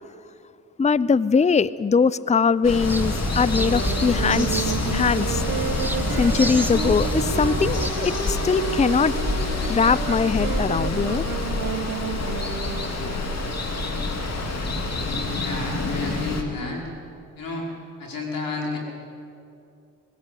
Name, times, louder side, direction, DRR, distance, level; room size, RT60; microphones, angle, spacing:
voice 1, 0.8-4.6 4.9-5.4 6.1-9.1 9.7-11.3, left 5 dB, 20° left, 18 dB, 0.6 m, -21 dB
Water, 2.6-16.4, left 2 dB, 45° left, 2.9 m, -27 dB
sound 1, 2.8-7.9, right 1 dB, 5° right, 1.8 m, -29 dB
Wind instrument woodwind instrument, 3.5-13.1, right 6 dB, 80° right, 3.3 m, -31 dB
voice 2, 15.3-16.9 17.4-17.7 18.0-18.8, left 3 dB, 65° left, 0 dB, 5.3 m, -31 dB
20.5 x 17.0 x 8.5 m, 2.6 s
supercardioid pair, 50°, 37 cm